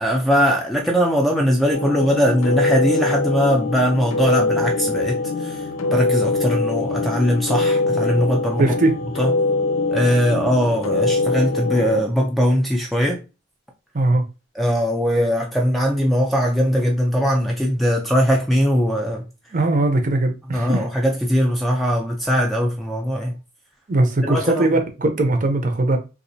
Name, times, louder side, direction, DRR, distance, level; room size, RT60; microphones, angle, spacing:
voice 1, 0.0-8.7 9.2-9.3 9.9-13.2 14.6-19.2 20.5-23.3 24.3-24.7, equal, ahead, 0.5 m, -20 dB
sound 1, 1.7-12.0, left 3 dB, 80° left, 0.6 m, -23 dB
voice 2, 8.6-9.0 13.9-14.2 19.5-20.9 23.9-26.0, right 2 dB, 40° right, 0.7 m, -19 dB
3.9 x 2.6 x 2.7 m
head